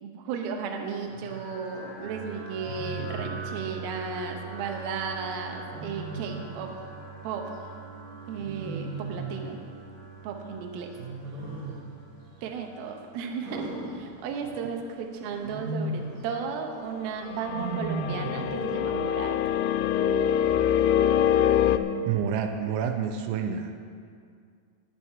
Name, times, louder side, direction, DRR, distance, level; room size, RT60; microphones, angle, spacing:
voice 1, 0.0-6.7 7.2-7.5 8.3-9.6 10.2-10.9 12.4-19.4, right 5 dB, 70° right, 3 dB, 2.4 m, -34 dB
sound 1, 1.1-20.8, right 5 dB, 40° left, 4.7 m, -44 dB
Wild animals, 1.1-1.4 2.6-3.4 5.7-6.6 8.4-9.5 10.9-11.9 13.4-14.6 15.3-16.2 17.5-18.5, right 3 dB, 45° right, 2.6 m, -36 dB
sound 2, 17.3-21.8, left 10 dB, 90° left, 3.1 m, -24 dB
voice 2, 22.1-23.8, right 7 dB, 85° right, 6 dB, 3.1 m, -28 dB
19.0 x 7.4 x 4.6 m, 2.2 s
omnidirectional pair, 5.5 m